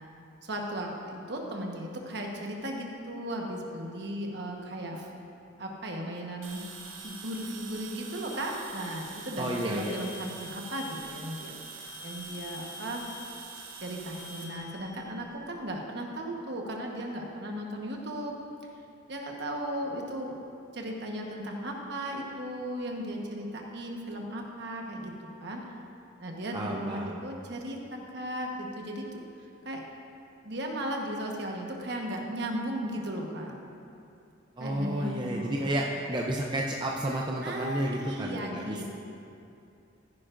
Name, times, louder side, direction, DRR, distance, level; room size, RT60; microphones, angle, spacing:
voice 1, 0.4-5.1 5.6-6.6 7.0-13.1 13.8-18.4 19.1-20.4 20.7-25.1 25.4-25.6 26.2-29.8 30.4-33.5 34.6-35.7 37.4-38.8, right 1 dB, 55° right, 1 dB, 1.2 m, -36 dB
sound 1, 6.4-15.7, right 2 dB, 75° right, 0.9 m, -44 dB
voice 2, 9.4-9.9 26.5-27.2 34.6-38.8, right 1 dB, 25° right, -1 dB, 0.5 m, -31 dB
15.0 x 9.6 x 2.5 m, 2.6 s
head